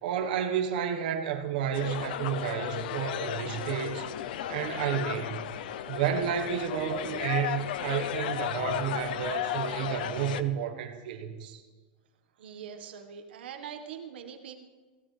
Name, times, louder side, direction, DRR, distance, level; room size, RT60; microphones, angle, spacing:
voice 1, 0.0-4.1 4.5-5.5 5.9-11.6, right 8 dB, 60° right, 3 dB, 1.4 m, -31 dB
sound 1, 1.7-10.4, left 10 dB, 60° left, 0.6 m, -34 dB
voice 2, 12.4-14.5, right 8 dB, 90° right, 5 dB, 1.6 m, -43 dB
22.0 x 16.0 x 3.4 m, 1.3 s
supercardioid pair, 175°, 5 cm